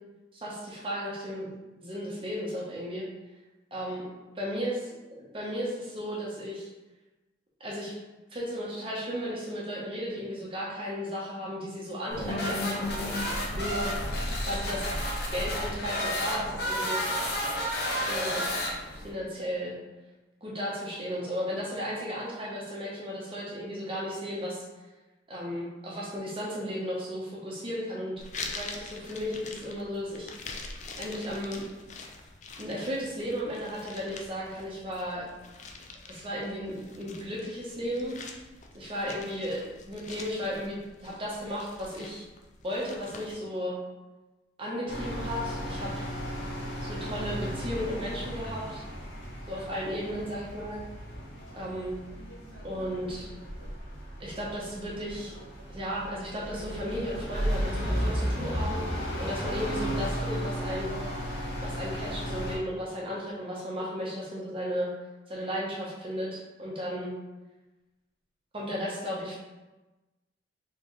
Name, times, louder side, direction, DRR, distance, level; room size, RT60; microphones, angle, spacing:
voice 1, 0.4-1.5 1.8-3.0 3.7-4.1 4.4-4.7 5.3-6.7 7.6-7.9 8.3-12.8 13.3-13.9 14.4-14.9 15.3-17.0 18.1-18.5 18.9-19.7 20.4-24.6 25.3-30.6 31.0-31.6 32.6-35.2 36.1-38.2 38.7-42.2 42.6-43.8 44.6-46.1 46.9-48.8 49.5-50.8 51.5-52.0 52.6-53.3 54.2-55.4 55.7-58.8 59.2-60.9 61.6-64.9 65.3-67.1 68.5-69.3, equal, 30° right, -5 dB, 0.9 m, -34 dB
sound 1, 12.1-19.1, equal, 55° left, 0.9 m, -31 dB
sound 2, 28.2-43.3, left 4 dB, 40° left, 0.4 m, -45 dB
sound 3, 44.9-62.6, equal, 75° left, 1.4 m, -34 dB
4.4 x 3.7 x 3.1 m, 1.1 s
head